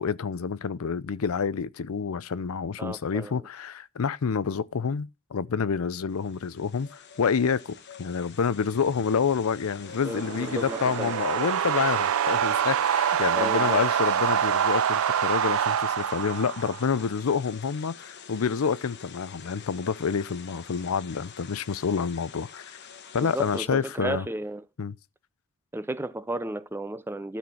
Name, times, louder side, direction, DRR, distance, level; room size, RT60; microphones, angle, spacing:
voice 1, 0.0-22.7 23.1-24.3 24.8-24.9, left 6 dB, 80° left, 0.5 m, -28 dB
voice 2, 2.8-3.4 10.0-11.2 13.3-13.8 23.2-24.6 25.7-27.4, right 1 dB, 10° right, 0.6 m, -33 dB
sound 1, 6.1-23.7, left 7 dB, 55° left, 1.0 m, -46 dB
sound 2, 9.9-17.0, right 8 dB, 70° right, 0.4 m, -26 dB
12.5 x 4.4 x 5.8 m
head